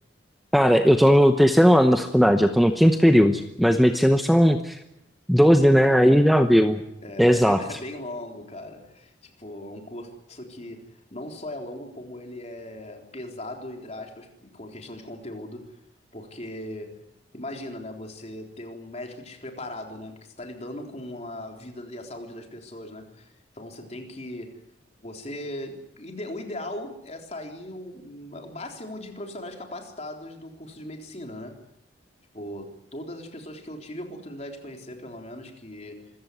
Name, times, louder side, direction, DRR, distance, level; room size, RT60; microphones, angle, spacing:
voice 1, 0.5-4.8 5.3-6.8 7.2-7.8, equal, ahead, 6 dB, 0.9 m, -17 dB
voice 2, 5.8-6.3 7.0-15.7 16.1-17.0 17.3-24.6 25.0-31.6 32.3-36.1, left 1 dB, 35° left, 3 dB, 3.8 m, -38 dB
26.0 x 15.5 x 9.3 m, 0.82 s
head